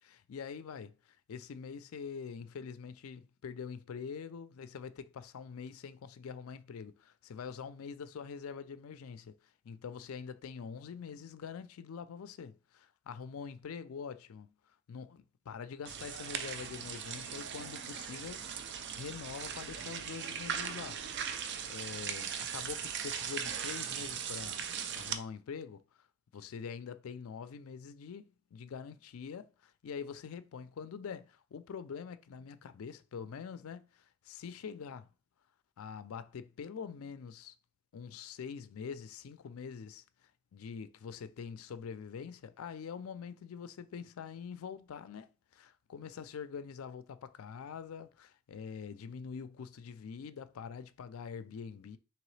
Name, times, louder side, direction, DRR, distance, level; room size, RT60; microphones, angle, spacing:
voice 1, 0.1-21.4 21.7-26.1 26.3-35.1 35.8-37.5 37.9-52.0, left 6 dB, 75° left, 0.4 m, -45 dB
sound 1, 15.8-25.2, right 7 dB, 55° right, 0.4 m, -39 dB
3.8 x 3.0 x 3.2 m
head